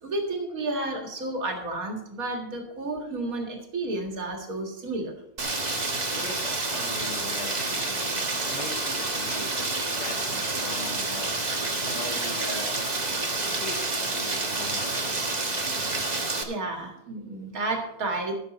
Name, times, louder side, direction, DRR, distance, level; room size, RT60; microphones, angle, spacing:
voice 1, 0.0-5.1 8.6-8.7 9.6-9.9 16.4-18.3, right 2 dB, 45° right, 2 dB, 2.3 m, -32 dB
Rain, 5.4-16.4, right 3 dB, 25° right, 1.0 m, -29 dB
voice 2, 6.1-9.6 10.0-11.3 11.8-12.7 13.6-15.2, left 3 dB, 75° left, 0 dB, 2.9 m, -40 dB
15.0 x 7.4 x 4.2 m, 0.76 s
omnidirectional pair, 2.3 m